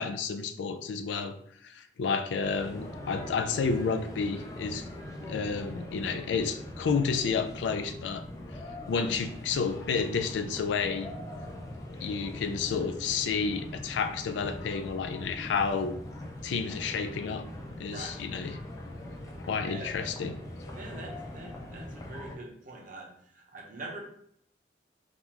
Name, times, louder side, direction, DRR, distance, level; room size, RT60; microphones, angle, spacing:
voice 1, 0.0-1.3 1.6-4.9 5.2-8.2 8.9-11.1 12.0-16.0 16.4-17.4 17.8-18.6 19.5-20.4, left 5 dB, 80° left, 9 dB, 0.3 m, -30 dB
sound 1, 2.4-22.4, left 1 dB, 20° left, 0.4 m, -42 dB
voice 2, 17.9-18.2 19.6-19.9 20.8-24.0, right 2 dB, 45° right, 1 dB, 0.7 m, -44 dB
3.6 x 2.4 x 2.9 m, 0.68 s
head